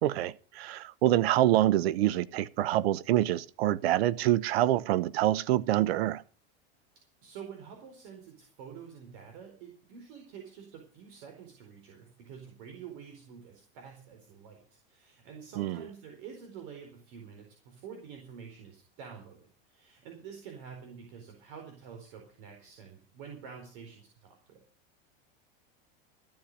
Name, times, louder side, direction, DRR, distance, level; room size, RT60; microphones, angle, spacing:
voice 1, 0.0-6.2 15.6-15.9, right 14 dB, 85° right, 0.8 m, -26 dB
voice 2, 7.2-14.6 14.9-24.6, right 7 dB, 60° right, 4.4 m, -48 dB
15.0 x 8.9 x 6.5 m
supercardioid pair, 155°, 30 cm